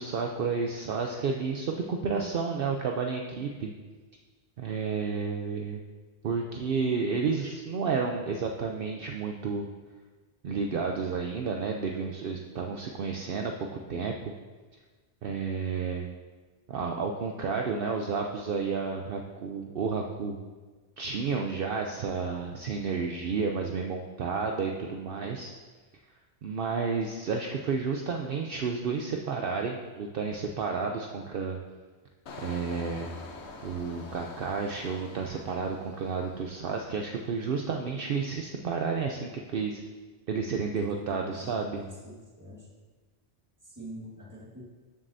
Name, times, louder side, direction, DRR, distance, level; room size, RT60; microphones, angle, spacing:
voice 1, 0.0-3.7 4.6-5.8 6.2-9.7 10.4-14.3 15.2-16.1 16.7-20.4 21.0-25.5 26.4-31.6 32.4-33.1 33.6-39.8 40.3-41.8, right 5 dB, 60° right, 2 dB, 0.8 m, -31 dB
Engine, 32.3-36.9 37.3-37.6, left 3 dB, 80° left, 1.2 m, -46 dB
voice 2, 40.9-42.7 43.6-44.6, right 1 dB, 15° right, -4 dB, 1.6 m, -45 dB
12.5 x 7.4 x 2.7 m, 1.4 s
omnidirectional pair, 1.1 m